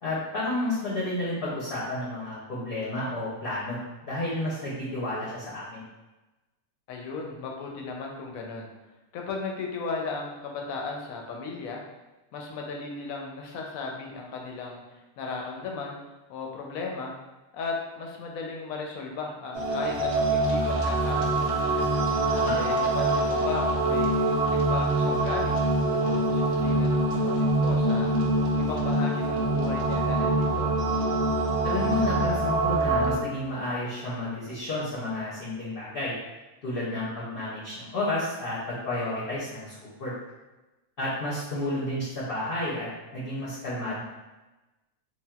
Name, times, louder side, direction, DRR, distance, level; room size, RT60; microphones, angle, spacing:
voice 1, 0.0-5.8 22.3-22.6 31.6-36.2 36.6-40.1 41.0-44.0, left 1 dB, 50° left, -7 dB, 0.8 m, -31 dB
voice 2, 6.9-8.7 9.1-11.8 12.3-16.0 16.3-17.1 17.5-21.9 22.5-24.2 24.5-25.5 26.0-28.2 28.6-30.7, left 4 dB, 80° left, 0 dB, 1.0 m, -36 dB
sound 1, 19.5-33.2, right 2 dB, 65° right, 0.8 m, -25 dB
3.3 x 2.5 x 2.3 m, 1.1 s
omnidirectional pair, 1.5 m